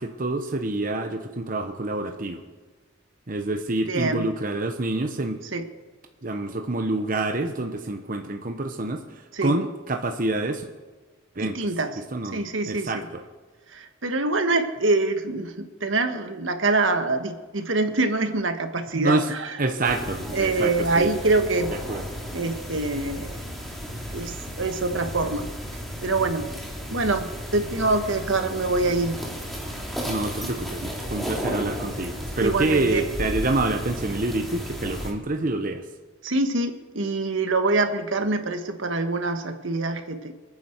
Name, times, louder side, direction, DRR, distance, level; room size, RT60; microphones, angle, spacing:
voice 1, 0.0-2.4 3.3-5.4 6.2-10.7 11.3-11.6 12.0-13.2 18.9-21.1 21.7-22.1 30.1-35.8, right 2 dB, 45° right, 5 dB, 1.0 m, -27 dB
voice 2, 3.9-4.3 5.5-5.6 9.3-9.5 11.4-12.0 12.3-13.0 13.7-15.5 15.8-19.5 20.3-21.7 22.3-23.3 24.1-25.5 26.0-26.5 26.9-29.2 32.4-33.0 36.2-40.3, right 3 dB, 75° right, 7 dB, 1.5 m, -25 dB
sound 1, 19.8-35.1, equal, ahead, 2.7 m, -34 dB
28.0 x 9.6 x 4.6 m, 1.4 s
head